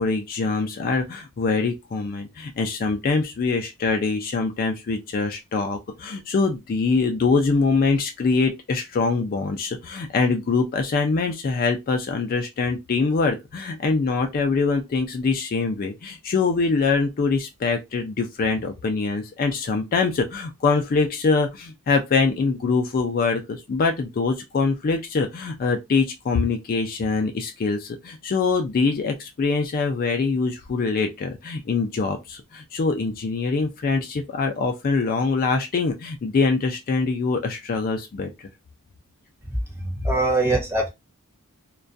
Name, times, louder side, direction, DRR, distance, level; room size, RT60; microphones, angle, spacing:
voice 1, 0.0-38.3, left 4 dB, 40° left, 0.4 m, -24 dB
voice 2, 39.8-40.9, right 2 dB, 10° right, 0.7 m, -22 dB
2.3 x 2.1 x 2.5 m
head